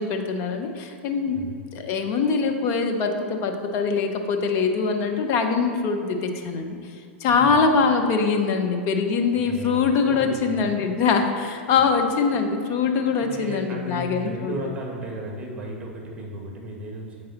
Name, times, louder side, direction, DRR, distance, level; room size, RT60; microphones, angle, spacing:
voice 1, 0.0-1.5 1.7-6.8 7.2-14.5, left 5 dB, 40° left, 5 dB, 0.8 m, -23 dB
voice 2, 9.4-10.8 13.2-17.2, right 1 dB, 20° right, -1 dB, 1.7 m, -35 dB
7.7 x 5.4 x 4.1 m, 2.2 s
hypercardioid pair, 105°, 7 cm